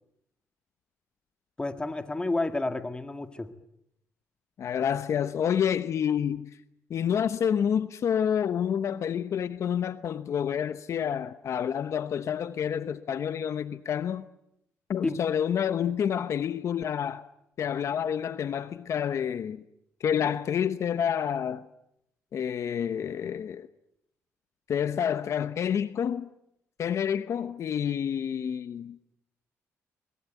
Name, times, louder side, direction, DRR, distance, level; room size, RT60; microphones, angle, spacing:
voice 1, 1.6-3.5 15.0-15.2, left 2 dB, 15° left, 2.1 m, -30 dB
voice 2, 4.6-6.6 6.9-14.2 14.9-17.3 17.6-19.6 20.0-21.7 22.3-23.7 24.7-26.3 26.8-29.0, left 8 dB, 60° left, 0.9 m, -28 dB
23.5 x 21.0 x 9.3 m
cardioid pair, 90°, 6 cm